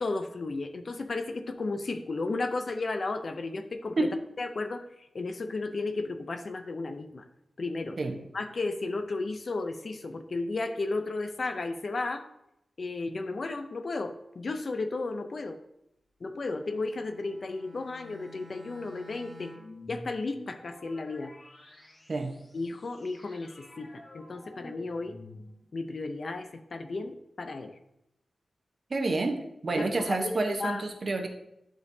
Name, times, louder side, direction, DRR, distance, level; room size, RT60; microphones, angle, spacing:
voice 1, 0.0-4.1 4.4-7.2 7.6-8.0 8.3-12.3 12.8-15.6 16.2-19.5 19.9-21.3 22.5-23.9 24.1-25.1 25.7-27.8 29.7-30.8, left 3 dB, 45° left, 8 dB, 0.5 m, -34 dB
Bowed string instrument, 16.4-19.8, left 2 dB, 10° right, 1.3 m, -52 dB
sound 1, 19.5-25.8, left 1 dB, 25° left, 0.9 m, -49 dB
voice 2, 28.9-31.3, right 2 dB, 40° right, 4 dB, 0.9 m, -29 dB
11.0 x 5.2 x 2.7 m, 0.83 s
wide cardioid pair, 180°, 0 cm